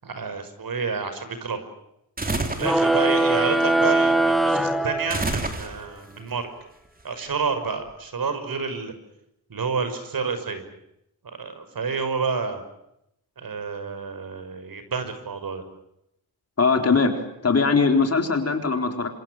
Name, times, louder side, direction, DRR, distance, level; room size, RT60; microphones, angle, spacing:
voice 1, 0.0-1.6 2.6-6.5 7.0-8.9 9.5-10.7 11.2-12.6 13.4-15.6, right 5 dB, 60° right, 9 dB, 6.1 m, -29 dB
sound 1, 2.2-2.8 5.1-6.0, right 2 dB, 20° right, 3.5 m, -27 dB
sound 2, 2.6-5.6, right 1 dB, ahead, 1.8 m, -21 dB
voice 2, 16.6-19.1, left 4 dB, 40° left, 5 dB, 4.2 m, -21 dB
29.0 x 27.0 x 6.5 m, 0.81 s
wide cardioid pair, 165°, 39 cm